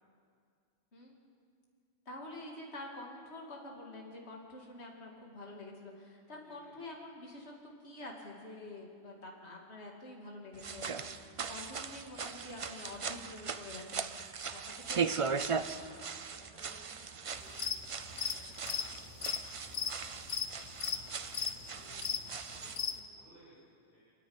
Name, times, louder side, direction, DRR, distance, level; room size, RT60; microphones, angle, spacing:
voice 1, 2.1-14.1 14.5-14.6 14.9-15.3, left 2 dB, 65° left, -1 dB, 2.7 m, -47 dB
voice 2, 6.4-6.7 14.5-14.7 15.7-17.5 17.9-19.9 20.6-22.2 22.5-24.0, equal, 50° left, -9 dB, 7.4 m, -60 dB
sound 1, 10.6-22.8, right 5 dB, 40° right, 0.5 m, -39 dB
sound 2, 17.4-17.8 18.1-23.0, left 7 dB, 80° left, 1.4 m, -36 dB
30.0 x 10.0 x 9.6 m, 2.2 s
omnidirectional pair, 1.2 m